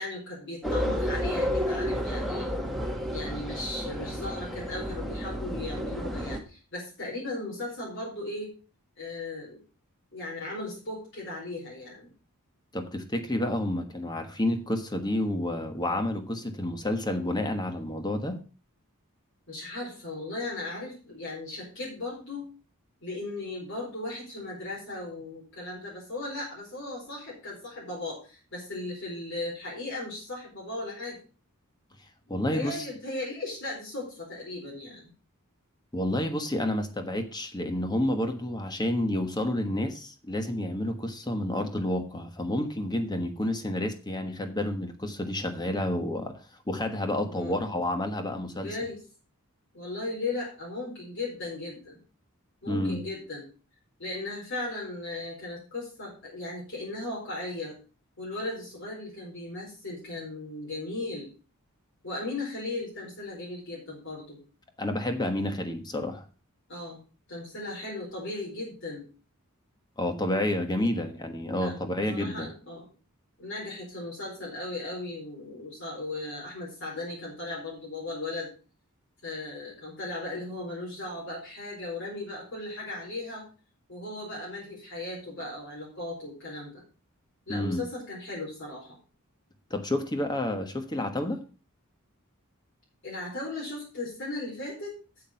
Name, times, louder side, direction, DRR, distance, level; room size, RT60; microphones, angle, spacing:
voice 1, 0.0-2.5 3.1-8.5 9.0-9.6 10.1-12.1 19.5-22.5 23.0-31.2 32.3-35.1 47.2-47.6 48.5-49.0 49.7-52.0 52.6-53.4 54.0-57.8 58.2-61.3 62.0-64.4 66.7-67.0 67.3-69.0 71.5-71.7 72.1-72.9 73.4-78.5 79.2-83.5 83.9-86.8 87.5-89.0 93.0-95.0, left 2 dB, 55° left, -4 dB, 4.4 m, -37 dB
sound 1, 0.6-6.4, equal, ahead, 1.5 m, -31 dB
voice 2, 12.7-18.4 32.3-32.9 35.9-46.4 46.7-48.7 52.7-53.0 64.8-66.2 70.0-72.5 87.5-87.8 89.7-91.4, left 1 dB, 20° left, 7 dB, 1.3 m, -30 dB
8.5 x 7.8 x 5.7 m, 0.35 s
head